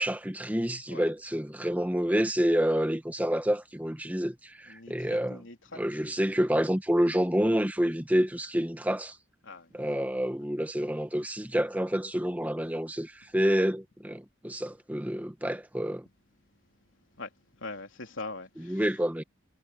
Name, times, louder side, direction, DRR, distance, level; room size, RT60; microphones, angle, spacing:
voice 1, 0.0-5.4 5.8-9.2 9.7-16.1 18.6-19.2, equal, 10° right, 1.1 m, -28 dB
voice 2, 4.7-5.8 9.4-9.8 17.2-18.9, left 3 dB, 80° left, 3.7 m, -42 dB
head